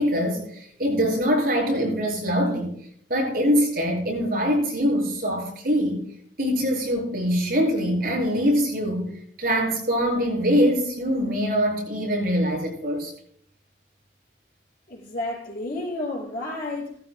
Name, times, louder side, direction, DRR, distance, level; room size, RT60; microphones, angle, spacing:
voice 1, 0.0-2.7 3.1-6.1 6.4-13.1, equal, 55° right, 6.2 m, -23 dB
voice 2, 14.9-17.0, left 2 dB, 50° left, 5.5 m, -31 dB
18.0 x 14.0 x 2.2 m
head